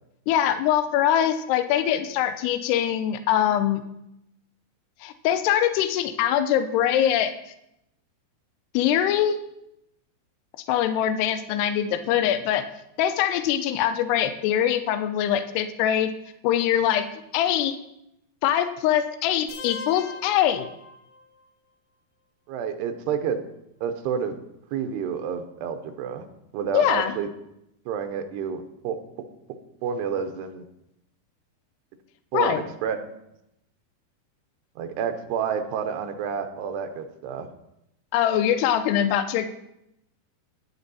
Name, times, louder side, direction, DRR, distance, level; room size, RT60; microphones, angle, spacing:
voice 1, 0.3-3.8 5.0-7.3 8.7-9.4 10.7-12.6 13.0-16.1 16.4-17.1 17.3-17.8 18.4-20.7 26.7-27.1 32.3-32.6 38.1-39.5, left 10 dB, 85° left, 10 dB, 2.7 m, -23 dB
sound 1, 19.5-21.4, left 4 dB, 65° left, 1.9 m, -40 dB
voice 2, 22.5-23.4 23.8-24.3 24.7-26.3 26.5-27.3 27.9-29.0 29.8-30.6 32.3-33.0 34.8-37.5, right 7 dB, 85° right, 7 dB, 2.9 m, -29 dB
10.5 x 9.8 x 4.1 m, 0.83 s
omnidirectional pair, 4.7 m